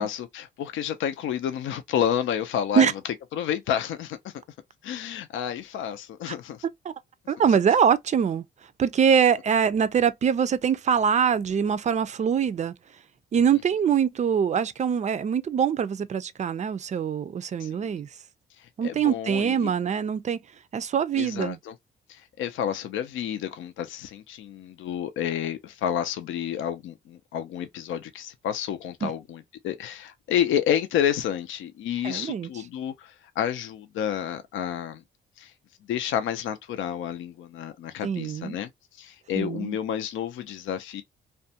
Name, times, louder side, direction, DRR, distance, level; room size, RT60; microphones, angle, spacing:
voice 1, 0.0-2.9 3.3-4.3 4.8-6.6 17.6-18.0 18.6-19.7 21.1-21.7 22.1-35.0 35.4-35.5 35.9-41.0, left 9 dB, 75° left, 0.5 m, -30 dB
voice 2, 7.3-8.4 8.8-12.7 13.3-18.1 18.8-20.4 20.7-21.6 29.0-29.1 32.0-32.5 38.0-38.6 39.4-39.8, right 7 dB, 35° right, 0.4 m, -23 dB
2.5 x 2.2 x 2.6 m
cardioid pair, 90°, 20 cm